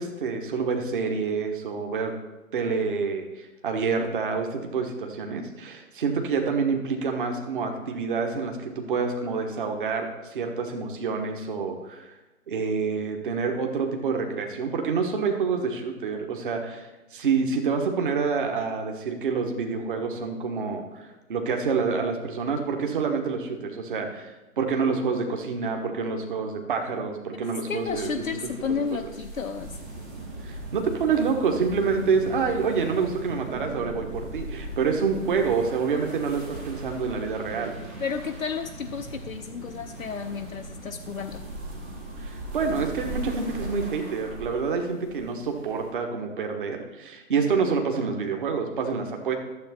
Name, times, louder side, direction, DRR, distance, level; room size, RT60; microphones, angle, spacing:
voice 1, 0.0-2.1 2.5-12.1 12.5-28.1 30.4-37.7 42.2-49.3, right 5 dB, 35° right, 3 dB, 1.3 m, -27 dB
voice 2, 27.4-29.7 38.0-41.4, left 6 dB, 70° left, 4 dB, 0.7 m, -32 dB
sound 1, 27.7-45.9, right 1 dB, 10° right, 0.7 m, -41 dB
sound 2, 29.6-42.7, right 3 dB, 55° right, 1.3 m, -41 dB
12.0 x 7.5 x 4.3 m, 1.1 s
figure-of-eight pair, 140°, 42 cm